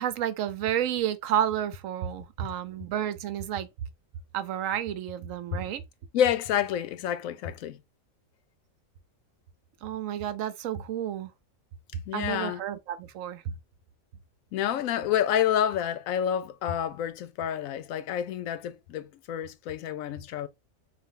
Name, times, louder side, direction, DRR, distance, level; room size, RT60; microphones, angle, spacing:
voice 1, 0.0-3.7 4.3-5.8 9.8-11.3 12.1-13.5, right 10 dB, 80° right, 1.0 m, -31 dB
voice 2, 6.1-7.8 12.1-12.6 14.5-20.5, left 10 dB, 85° left, 1.0 m, -28 dB
4.2 x 2.6 x 3.5 m
omnidirectional pair, 1.4 m